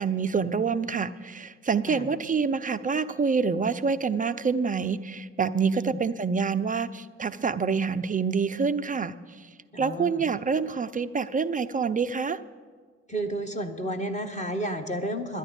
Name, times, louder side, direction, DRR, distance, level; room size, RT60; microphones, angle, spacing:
voice 1, 0.0-9.5 9.8-12.4, right 5 dB, 20° right, 12 dB, 0.5 m, -27 dB
voice 2, 9.7-10.3 13.1-15.4, right 1 dB, 20° left, 7 dB, 1.3 m, -32 dB
10.5 x 10.0 x 8.2 m, 1.5 s
hypercardioid pair, 45°, 37 cm